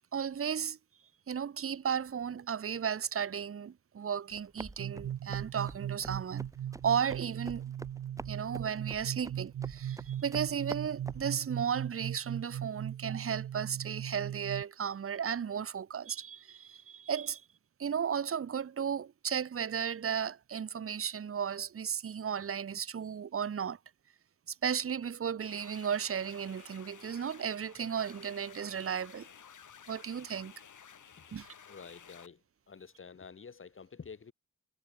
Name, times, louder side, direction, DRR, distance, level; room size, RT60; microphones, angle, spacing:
voice 1, 0.1-0.8 1.3-6.5 6.8-7.6 8.3-17.4 17.8-23.8 24.5-29.3 29.9-30.5 31.3-31.5, right 7 dB, 50° right, 1.1 m, -34 dB
sound 1, 4.3-11.3, right 2 dB, 10° right, 0.7 m, -48 dB
sound 2, 4.8-14.6, right 10 dB, 90° right, 0.8 m, -39 dB
sound 3, 25.4-32.3, left 7 dB, 85° left, 5.9 m, -54 dB
voice 2, 31.7-32.4 32.7-34.3, left 5 dB, 45° left, 1.9 m, -49 dB
wide cardioid pair, 165°, 30 cm